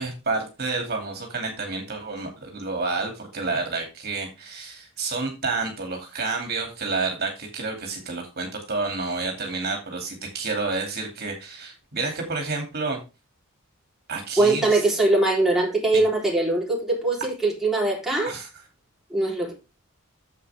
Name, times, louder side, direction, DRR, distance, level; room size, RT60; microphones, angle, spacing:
voice 1, 0.0-13.0 14.1-14.8 15.9-16.0 18.2-18.5, right 3 dB, 45° right, 2.6 m, -29 dB
voice 2, 14.4-18.3 19.1-19.5, right 2 dB, ahead, 3.7 m, -22 dB
9.5 x 7.7 x 3.4 m
head